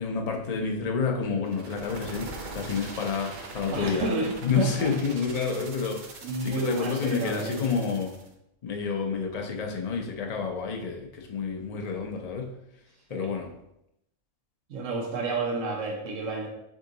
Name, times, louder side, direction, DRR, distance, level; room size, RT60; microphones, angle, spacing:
voice 1, 0.0-4.1 4.4-6.1 6.4-8.1 8.6-12.5 13.1-13.5, left 5 dB, 70° left, 2 dB, 0.3 m, -29 dB
sound 1, 1.5-8.3, right 3 dB, 50° right, 0.6 m, -42 dB
voice 2, 3.7-4.9 6.2-7.6 13.1-13.3 14.7-16.5, right 3 dB, 70° right, -1 dB, 1.1 m, -31 dB
3.7 x 3.6 x 3.9 m, 0.82 s
omnidirectional pair, 1.4 m